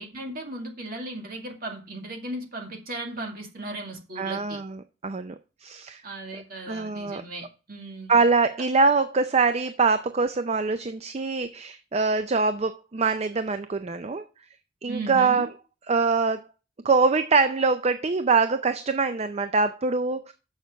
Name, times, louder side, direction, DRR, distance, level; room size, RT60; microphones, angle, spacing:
voice 1, 0.0-4.6 6.0-8.2 14.9-15.5, right 2 dB, 50° right, 2.2 m, -36 dB
voice 2, 4.2-6.0 6.7-7.2 8.1-14.2 14.8-15.5 15.9-16.5 16.8-20.3, right 4 dB, 35° right, 0.5 m, -24 dB
7.2 x 6.4 x 5.0 m
head